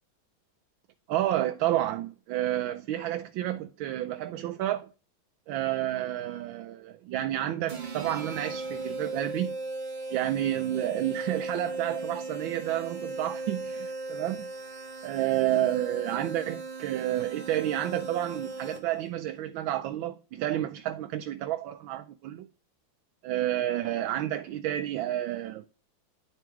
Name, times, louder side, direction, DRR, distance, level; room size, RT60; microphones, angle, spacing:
voice 1, 1.1-4.9 5.5-9.6 10.1-14.4 15.0-22.5 23.2-25.7, right 13 dB, 85° right, 1.4 m, -30 dB
sound 1, 7.7-19.1, right 3 dB, 40° right, 0.7 m, -37 dB
10.5 x 4.6 x 3.5 m
omnidirectional pair, 2.1 m